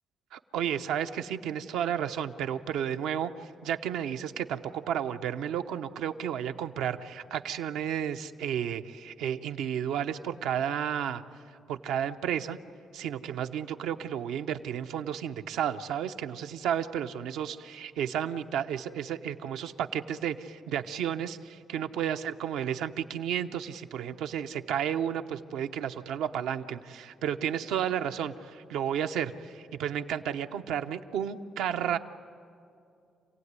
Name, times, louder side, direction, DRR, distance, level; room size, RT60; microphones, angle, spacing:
voice 1, 0.3-3.3 3.6-11.2 11.7-12.6 12.9-32.0, right 9 dB, 90° right, 7 dB, 0.8 m, -32 dB
27.0 x 16.5 x 9.7 m, 2.5 s
cardioid pair, 90°, 0 cm